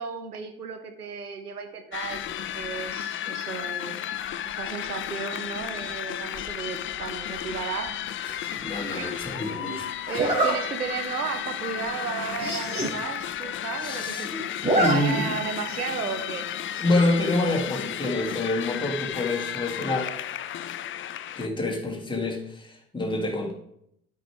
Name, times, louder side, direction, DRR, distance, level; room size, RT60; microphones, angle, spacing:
voice 1, 0.0-4.1 4.5-8.0 8.9-14.5 14.7-16.5, right 6 dB, 90° right, 6 dB, 0.8 m, -34 dB
sound 1, 1.9-21.5, left 11 dB, 30° left, 0.4 m, -33 dB
Zipper (clothing), 8.2-8.6 10.1-10.5 11.1-11.3 11.6-11.7 11.9-12.0 12.3-12.9 13.3-13.4 13.6-14.1 14.4-14.9 15.3-15.4 16.7-17.1, right 1 dB, 15° right, 3.2 m, -26 dB
voice 2, 8.3-10.1 13.8-14.5 14.8-15.3 16.8-20.1 21.4-23.5, left 2 dB, 10° left, -2 dB, 1.7 m, -27 dB
12.5 x 4.6 x 3.4 m, 0.75 s
figure-of-eight pair, 50°, 44 cm